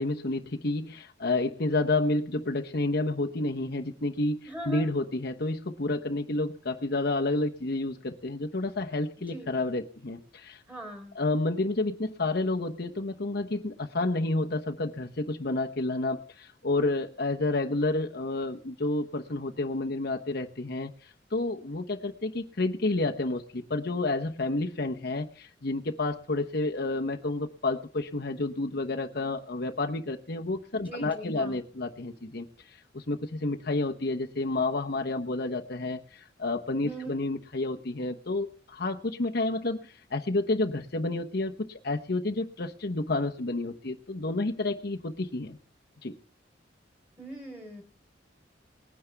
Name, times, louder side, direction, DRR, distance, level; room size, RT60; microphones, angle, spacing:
voice 1, 0.0-10.6 11.1-45.6 46.0-46.2, left 2 dB, 60° left, 1.0 m, -30 dB
voice 2, 4.5-4.8 9.3-9.5 10.7-11.1 30.8-31.6 36.9-37.2 47.2-47.8, right 1 dB, 10° right, 4.1 m, -40 dB
20.0 x 9.8 x 3.5 m
head